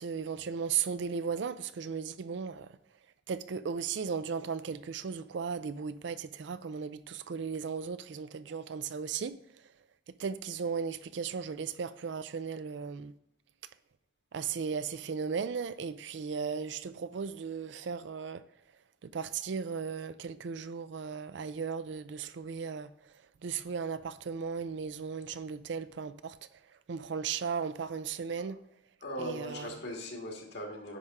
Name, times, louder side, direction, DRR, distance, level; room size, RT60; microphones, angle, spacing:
voice 1, 0.0-2.8 3.3-9.4 10.1-13.1 14.3-18.4 19.0-22.9 23.4-26.4 26.9-28.6 29.2-29.8, right 6 dB, 65° right, 0.4 m, -36 dB
voice 2, 29.0-31.0, equal, 60° left, 1.9 m, -39 dB
9.9 x 3.6 x 5.4 m
head